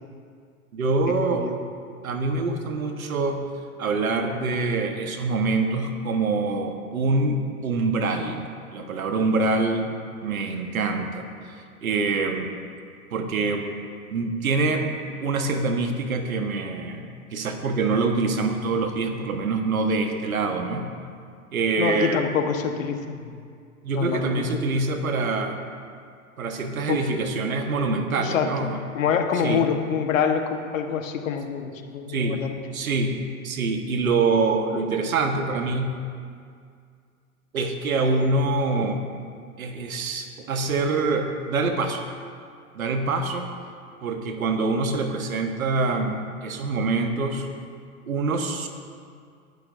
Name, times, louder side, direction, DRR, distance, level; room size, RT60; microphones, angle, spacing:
voice 1, 0.7-1.5 2.0-3.5 3.8-8.5 8.7-9.9 10.2-12.5 13.1-13.7 14.1-20.9 21.5-22.3 23.8-25.6 26.4-28.8 29.4-29.6 32.1-32.4 32.7-33.2 33.4-35.9 37.5-39.0 39.6-42.0 42.7-43.5 44.0-47.5 48.1-48.7, right 3 dB, 70° right, 5 dB, 1.5 m, -25 dB
voice 2, 21.8-23.4 23.9-24.4 26.9-27.0 28.1-28.7 28.9-32.5, left 7 dB, 60° left, 5 dB, 1.4 m, -26 dB
20.0 x 12.0 x 2.7 m, 2.2 s
figure-of-eight pair, 100°, 44 cm